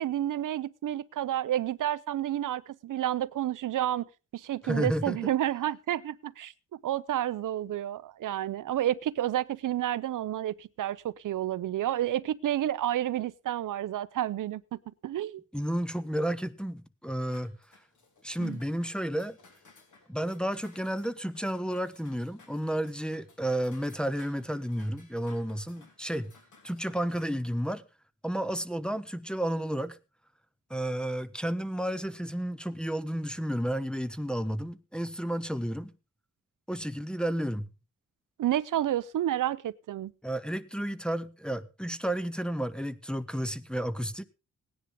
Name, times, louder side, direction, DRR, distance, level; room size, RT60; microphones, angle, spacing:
voice 1, 0.0-4.1 4.3-15.4 18.4-18.6 38.4-40.1, right 12 dB, 80° right, 0.6 m, -30 dB
voice 2, 4.6-5.2 15.5-17.5 18.2-19.4 20.1-26.3 26.6-27.8 28.2-30.0 30.7-35.9 36.7-37.7 40.2-44.2, equal, 5° left, 0.6 m, -32 dB
sound 1, 17.3-27.3, left 3 dB, 70° left, 3.3 m, -59 dB
17.0 x 10.5 x 3.7 m
wide cardioid pair, 105°, 31 cm